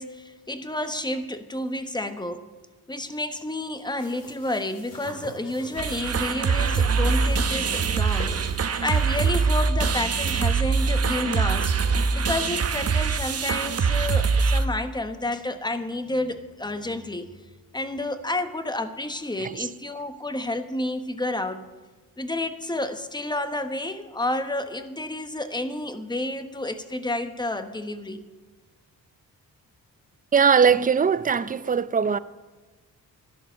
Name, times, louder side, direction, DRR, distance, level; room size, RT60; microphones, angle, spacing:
voice 1, 0.0-2.5 2.9-11.7 12.1-17.3 17.7-21.7 22.2-28.2, left 1 dB, 10° left, 1.1 m, -30 dB
sound 1, 4.0-9.3, left 2 dB, 45° left, 5.2 m, -44 dB
sound 2, 5.8-14.7, right 5 dB, 45° right, 0.9 m, -23 dB
voice 2, 30.3-32.2, right 6 dB, 25° right, 0.5 m, -20 dB
12.0 x 11.5 x 6.4 m
cardioid pair, 100°, 35 cm